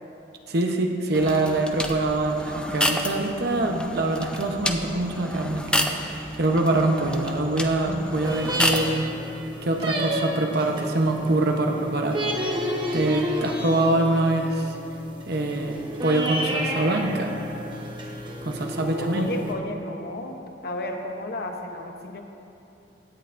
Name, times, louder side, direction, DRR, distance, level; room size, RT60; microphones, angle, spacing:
voice 1, 0.5-9.0 9.6-12.6 12.9-14.7 15.3-17.3 18.4-19.3, right 2 dB, 65° right, 3 dB, 0.9 m, -24 dB
sound 1, 1.1-9.0, left 1 dB, 5° left, 0.5 m, -30 dB
sound 2, 8.2-19.5, equal, 25° right, 1.1 m, -31 dB
voice 2, 19.0-22.2, left 1 dB, 60° left, 3 dB, 0.9 m, -33 dB
16.5 x 9.1 x 2.6 m, 2.9 s
head